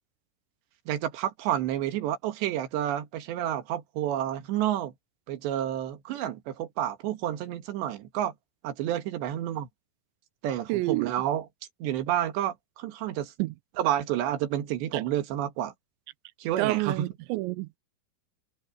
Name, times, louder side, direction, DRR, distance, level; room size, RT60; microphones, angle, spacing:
voice 1, 0.9-4.9 5.3-8.3 8.6-9.7 10.4-11.5 11.8-13.3 13.8-15.7 16.4-17.1, right 11 dB, 65° right, 3.6 m, -30 dB
voice 2, 10.7-11.1 13.4-13.5 14.9-15.0 16.6-17.8, right 20 dB, 85° right, 2.6 m, -28 dB
omnidirectional pair, 5.9 m